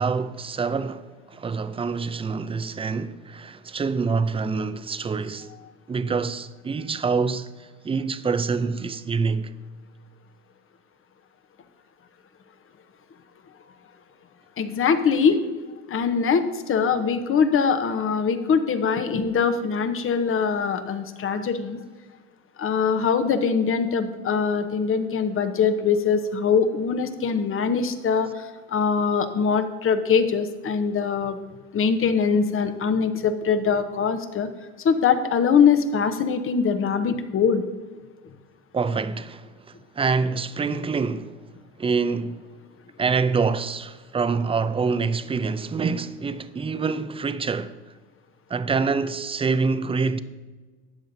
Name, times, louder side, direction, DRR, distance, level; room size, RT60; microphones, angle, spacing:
voice 1, 0.0-5.5 5.9-7.5 7.8-9.5 38.7-39.5 40.0-41.4 41.8-42.5 43.0-47.8 48.5-50.2, right 4 dB, 15° right, 0.5 m, -26 dB
voice 2, 14.6-15.4 15.9-21.8 22.6-31.4 31.7-34.5 34.8-37.6, left 6 dB, 40° left, 1.0 m, -22 dB
13.0 x 8.7 x 2.7 m
hypercardioid pair, 80°, 35 cm